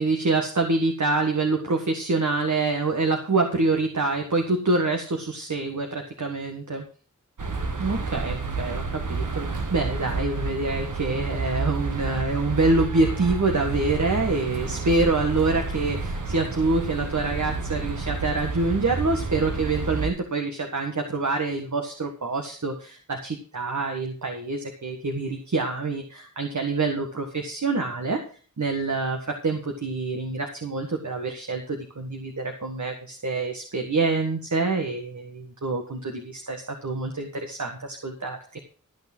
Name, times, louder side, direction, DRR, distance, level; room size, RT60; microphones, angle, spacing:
voice 1, 0.0-6.8 7.8-28.2 28.6-38.6, right 3 dB, 70° right, 4 dB, 1.6 m, -26 dB
sound 1, 7.4-20.1, right 3 dB, 85° right, 1.5 m, -30 dB
13.5 x 6.1 x 6.1 m, 0.40 s
wide cardioid pair, 55°, 30 cm